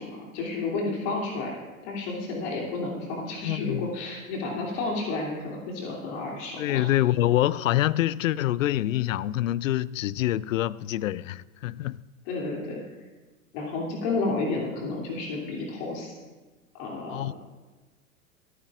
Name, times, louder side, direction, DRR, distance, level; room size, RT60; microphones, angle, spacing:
voice 1, 0.0-6.8 12.3-12.8 13.5-16.2 16.7-17.3, left 3 dB, 50° left, 2.8 m, -31 dB
voice 2, 3.3-3.9 6.6-12.0 17.1-17.3, left 14 dB, 70° left, 0.5 m, -26 dB
27.5 x 9.2 x 2.5 m
figure-of-eight pair, 95°, 41 cm